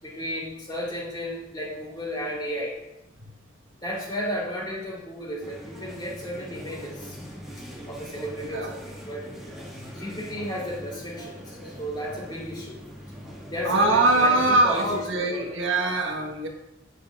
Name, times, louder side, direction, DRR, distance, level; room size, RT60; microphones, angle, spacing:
voice 1, 0.0-2.8 3.8-7.2 7.9-9.3 9.9-12.8 13.5-15.6, equal, 25° left, -4 dB, 3.4 m, -33 dB
sound 1, 5.4-15.0, equal, ahead, 1.9 m, -42 dB
voice 2, 13.6-16.5, right 2 dB, 75° right, 1 dB, 1.5 m, -22 dB
10.0 x 9.9 x 2.5 m, 0.97 s
head